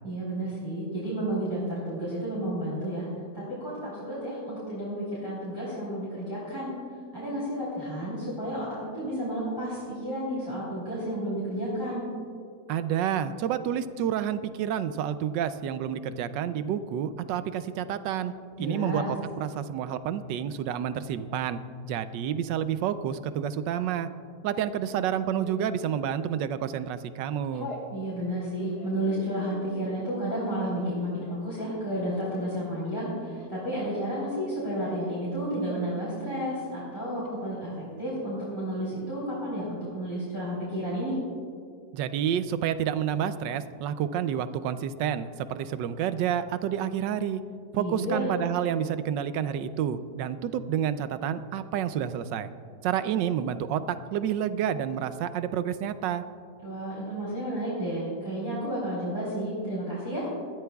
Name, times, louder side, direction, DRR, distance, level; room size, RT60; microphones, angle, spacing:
voice 1, 0.0-3.1 3.3-6.7 7.1-12.1 18.6-19.1 27.9-41.1 47.7-48.3 56.6-60.3, right 1 dB, 10° left, -10 dB, 3.6 m, -32 dB
voice 2, 12.7-18.3 18.6-24.1 24.4-27.7 41.9-47.4 47.7-52.5 52.8-56.2, right 9 dB, 90° right, 12 dB, 1.3 m, -29 dB
Telephone, 25.4-25.9 26.5-26.7 27.0-27.9 28.4-33.9 34.2-35.3 35.6-36.1 36.4-36.5 36.7-37.3, left 2 dB, 65° left, 2.0 m, -43 dB
20.5 x 13.5 x 2.3 m, 2.3 s
omnidirectional pair, 1.9 m